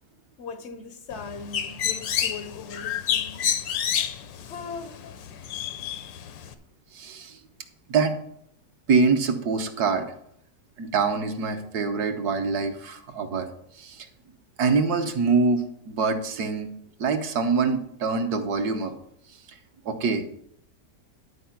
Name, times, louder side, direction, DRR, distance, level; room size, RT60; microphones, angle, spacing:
voice 1, 0.4-3.5 4.4-5.1, left 5 dB, 60° left, 0.7 m, -39 dB
Bird, 1.1-6.5, left 9 dB, 90° left, 1.5 m, -29 dB
voice 2, 6.9-7.4 7.9-8.2 8.9-10.1 10.8-13.5 13.8-14.1 14.6-16.7 17.0-18.9 19.8-20.3, right 4 dB, 65° right, 1.4 m, -24 dB
12.0 x 4.6 x 5.8 m
omnidirectional pair, 1.9 m